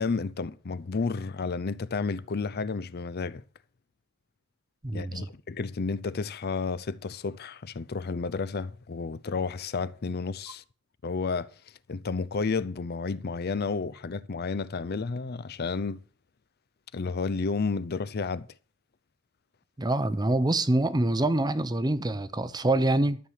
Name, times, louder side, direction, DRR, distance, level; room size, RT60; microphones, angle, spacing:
voice 1, 0.0-3.4 4.9-10.6 11.0-11.5 11.9-16.0 16.9-18.5, left 4 dB, 50° left, 0.5 m, -31 dB
voice 2, 4.8-5.3 19.8-23.2, right 2 dB, 20° right, 0.7 m, -25 dB
13.0 x 6.6 x 7.3 m
head